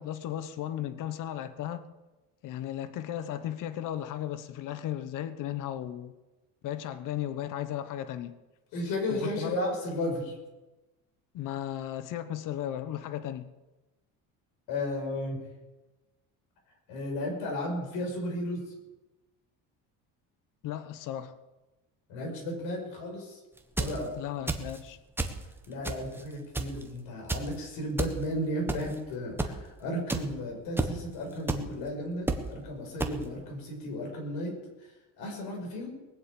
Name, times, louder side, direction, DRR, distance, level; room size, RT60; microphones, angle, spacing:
voice 1, 0.0-1.9 2.4-6.1 6.6-8.4 9.1-9.5 11.3-13.5 20.6-21.3 24.2-25.0, left 11 dB, 60° left, 1.2 m, -35 dB
voice 2, 8.7-10.4 14.7-15.4 16.9-18.7 22.1-23.4 23.8-24.1 25.7-34.9 35.2-35.9, left 1 dB, 80° left, 6.0 m, -34 dB
sound 1, 23.6-24.0 24.5-24.8 25.2-25.4 25.8-26.2 26.5-26.8 27.3-27.5 28.0-28.1 28.7-28.9 29.4-29.5 30.1-30.2 30.8-30.9 31.5-31.6 32.3-32.4 33.0-33.1, right 2 dB, 5° right, 1.3 m, -29 dB
20.0 x 7.7 x 8.5 m
cardioid pair, 140°, 36 cm